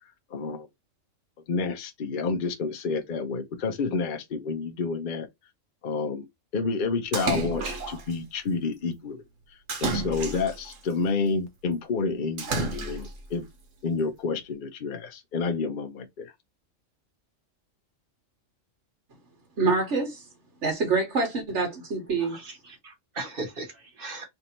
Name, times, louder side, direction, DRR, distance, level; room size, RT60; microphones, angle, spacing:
voice 1, 0.3-0.7 1.5-5.3 5.8-6.2 6.5-9.2 9.8-13.4 13.8-16.3, left 4 dB, 50° left, 0.7 m, -29 dB
Splash splatter, 7.1-8.1 9.7-10.8 12.4-13.2, right 4 dB, 85° right, 1.5 m, -31 dB
voice 2, 19.6-20.2 20.6-22.4, right 4 dB, 65° right, 1.6 m, -26 dB
voice 3, 22.2-24.3, right 2 dB, 45° right, 1.5 m, -38 dB
3.4 x 2.7 x 4.2 m
omnidirectional pair, 1.3 m